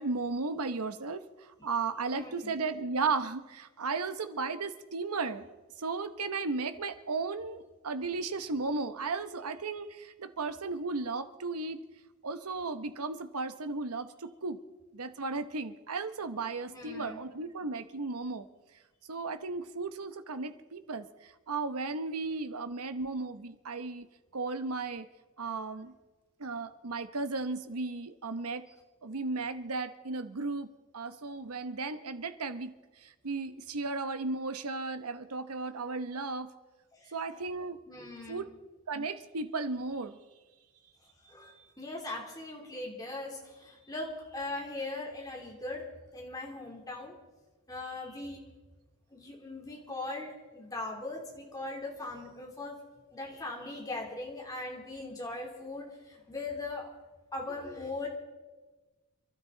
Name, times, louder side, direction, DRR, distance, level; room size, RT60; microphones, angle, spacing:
voice 1, 0.0-5.5 5.8-11.8 12.2-14.6 14.9-18.5 19.1-24.1 24.3-25.1 25.4-25.9 26.4-28.6 29.0-30.7 30.9-32.7 33.0-36.5 37.1-37.8 38.3-38.5 38.9-40.2, right 3 dB, 85° right, 11 dB, 1.0 m, -35 dB
voice 2, 2.1-2.5 16.7-17.2 37.0-37.1 37.9-38.4 41.2-45.8 46.1-47.1 47.7-48.4 49.1-50.3 50.5-52.7 53.1-56.9 57.3-58.1, left 2 dB, 15° left, -1 dB, 3.2 m, -40 dB
27.5 x 12.5 x 3.9 m, 1.2 s
head